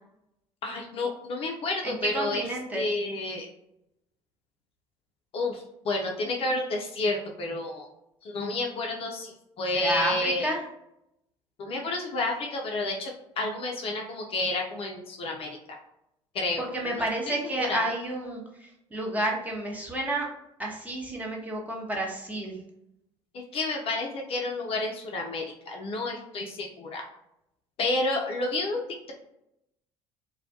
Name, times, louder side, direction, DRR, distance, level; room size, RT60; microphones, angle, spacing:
voice 1, 0.6-2.4 2.7-3.5 5.3-7.9 8.2-10.5 11.6-15.8 16.3-17.0 17.6-17.8 23.3-27.0 27.8-29.1, left 2 dB, 40° left, 1 dB, 0.4 m, -30 dB
voice 2, 1.8-2.9 9.7-10.6 16.6-20.3 20.6-22.6, right 1 dB, 10° right, -1 dB, 0.6 m, -30 dB
2.2 x 2.1 x 2.7 m, 0.81 s
figure-of-eight pair, 60°, 15 cm